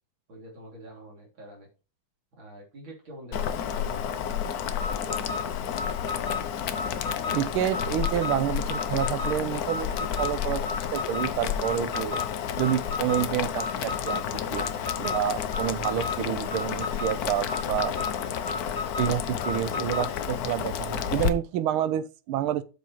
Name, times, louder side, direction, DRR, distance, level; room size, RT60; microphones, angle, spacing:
voice 1, 0.3-1.7 2.4-5.6, equal, 70° right, 3.8 m, -46 dB
Boiling, 3.3-21.3, left 8 dB, 60° left, 1.0 m, -31 dB
Alarm, 4.7-20.2, left 3 dB, 40° left, 2.6 m, -35 dB
voice 2, 7.3-12.2 12.6-14.6 15.0-18.0 19.0-22.6, right 11 dB, 90° right, 1.6 m, -29 dB
8.2 x 6.9 x 3.1 m
omnidirectional pair, 2.3 m